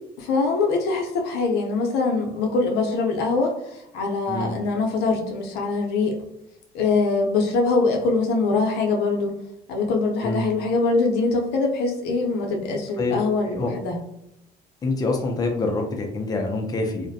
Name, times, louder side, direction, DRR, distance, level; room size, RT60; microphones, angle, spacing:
voice 1, 0.2-6.2 6.7-9.3 9.7-14.0, left 3 dB, 85° left, 1 dB, 0.6 m, -23 dB
voice 2, 14.8-17.1, left 3 dB, 20° left, 2 dB, 0.4 m, -26 dB
2.4 x 2.1 x 2.6 m, 0.82 s
cardioid pair, 110°, 17 cm